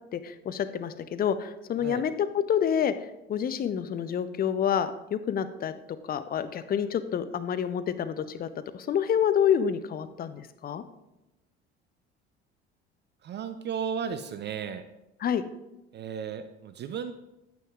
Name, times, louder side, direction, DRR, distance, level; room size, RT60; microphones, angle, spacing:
voice 1, 0.1-2.9 3.3-5.7 6.0-8.5 8.7-10.8 15.2-15.4, left 8 dB, 30° left, 12 dB, 0.6 m, -28 dB
voice 2, 13.2-14.8 15.9-17.1, right 7 dB, 35° right, 10 dB, 0.5 m, -34 dB
9.2 x 9.1 x 2.4 m, 0.93 s
figure-of-eight pair, 60°, 33 cm